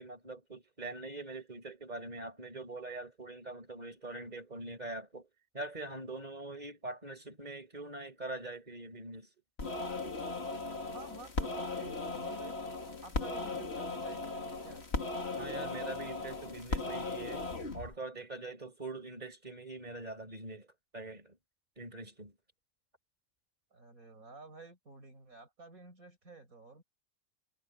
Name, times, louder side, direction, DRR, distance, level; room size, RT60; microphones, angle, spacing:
voice 1, 0.0-5.3 5.5-9.3 15.4-17.5 17.7-20.7 20.9-21.4 21.8-22.3, right 2 dB, 30° right, 5.5 m, -43 dB
sound 1, 9.6-17.9, left 3 dB, 50° left, 2.6 m, -37 dB
voice 2, 10.9-12.6 13.0-14.9 23.7-26.8, right 3 dB, 80° right, 5.6 m, -52 dB
omnidirectional pair, 1.4 m